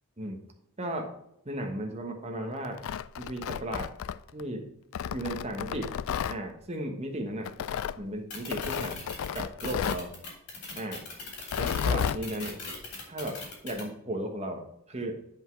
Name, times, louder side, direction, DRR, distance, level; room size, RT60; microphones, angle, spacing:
voice 1, 0.8-1.1 1.4-2.8 3.2-3.9 4.3-4.6 5.1-5.9 6.3-7.5 8.0-9.0 9.3-10.1 10.7-11.0 11.6-12.6 13.0-13.4 13.6-14.6 14.9-15.1, right 1 dB, 30° right, 3 dB, 1.3 m, -35 dB
Tearing, 2.6-4.4 4.9-6.4 7.5-8.0 8.5-10.1 11.4-12.2, left 8 dB, 65° left, 0.3 m, -32 dB
sound 1, 8.3-13.8, left 3 dB, 80° left, 3.5 m, -40 dB
8.3 x 5.4 x 4.6 m, 0.79 s
head